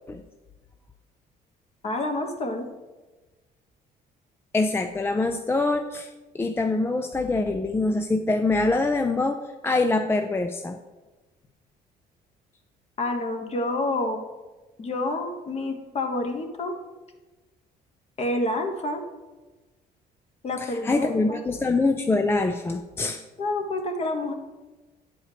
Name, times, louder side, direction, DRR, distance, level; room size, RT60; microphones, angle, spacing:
voice 1, 1.8-2.7 13.0-14.2 14.8-16.7 18.2-19.0 20.4-21.4 23.4-24.3, left 2 dB, 40° left, 5 dB, 1.2 m, -28 dB
voice 2, 4.5-10.8 20.6-23.2, left 3 dB, 15° left, 6 dB, 0.4 m, -24 dB
9.5 x 4.3 x 5.0 m, 1.2 s
cardioid pair, 110°, 17 cm